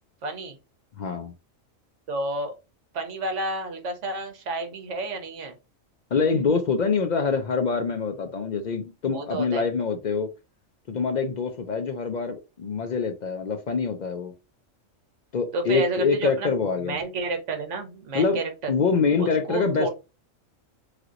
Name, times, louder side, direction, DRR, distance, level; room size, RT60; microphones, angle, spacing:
voice 1, 0.2-0.6 2.1-2.5 2.9-5.5 9.1-9.7 15.5-16.5 16.8-18.7 19.2-19.9, right 2 dB, 65° right, 1.2 m, -30 dB
voice 2, 1.0-1.3 6.1-10.3 10.9-14.3 15.3-17.0 18.1-18.4 18.7-19.9, left 5 dB, 65° left, 0.4 m, -25 dB
3.3 x 2.9 x 2.4 m
omnidirectional pair, 1.4 m